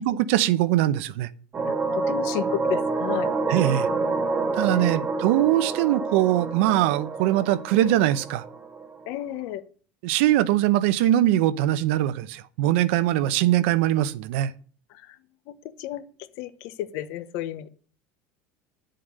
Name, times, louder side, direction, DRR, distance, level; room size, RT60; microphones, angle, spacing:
voice 1, 0.1-1.3 3.5-3.9 4.5-8.4 10.0-14.5, right 13 dB, 80° right, 0.9 m, -22 dB
sound 1, 1.5-9.1, right 3 dB, 20° right, 1.6 m, -28 dB
voice 2, 1.7-3.3 4.7-5.0 9.1-9.6 14.9-15.2 15.5-17.7, left 12 dB, 60° left, 1.2 m, -33 dB
11.0 x 7.7 x 6.6 m
cardioid pair, 155°, 7 cm